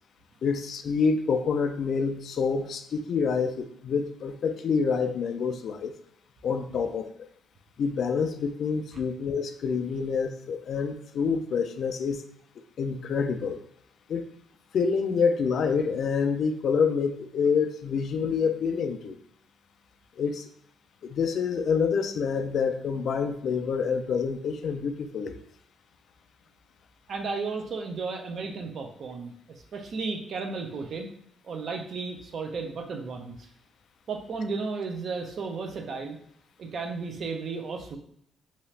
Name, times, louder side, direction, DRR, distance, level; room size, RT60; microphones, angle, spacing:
voice 1, 0.4-5.9 6.4-7.1 7.8-12.2 12.8-13.6 14.1-14.3 14.7-19.2 20.2-20.5 21.0-25.4, left 5 dB, 60° left, 8 dB, 0.3 m, -27 dB
voice 2, 27.1-29.3 29.7-31.1 31.4-33.5 34.1-36.2 36.6-38.0, right 4 dB, 60° right, 3 dB, 0.5 m, -34 dB
2.8 x 2.4 x 3.2 m, 0.69 s
cardioid pair, 90°, 0 cm